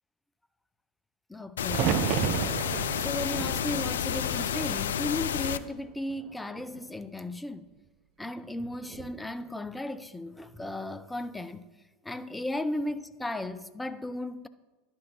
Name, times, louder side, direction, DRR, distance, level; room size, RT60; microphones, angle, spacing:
voice 1, 1.3-2.1 2.9-7.7 8.2-11.7 12.0-14.5, left 1 dB, 10° left, 0.5 m, -35 dB
sound 1, 1.6-5.6, left 9 dB, 70° left, 0.3 m, -30 dB
sound 2, 1.7-5.7 6.1-6.9 8.7-9.2, right 11 dB, 50° right, 0.4 m, -33 dB
11.0 x 4.5 x 6.1 m
figure-of-eight pair, 80°, 0 cm